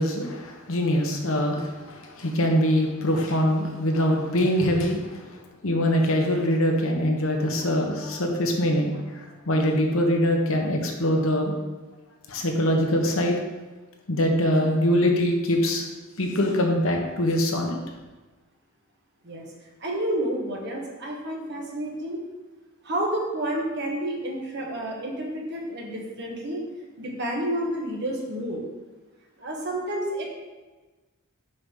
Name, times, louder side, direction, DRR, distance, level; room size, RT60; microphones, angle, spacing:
voice 1, 0.0-11.6 12.3-13.4 14.1-15.9 16.2-17.8, equal, 70° left, 2 dB, 1.0 m, -23 dB
voice 2, 19.8-22.2 22.8-26.6 27.0-28.6 29.4-30.2, right 1 dB, 50° right, -1 dB, 1.3 m, -30 dB
6.5 x 5.5 x 3.8 m, 1.3 s
head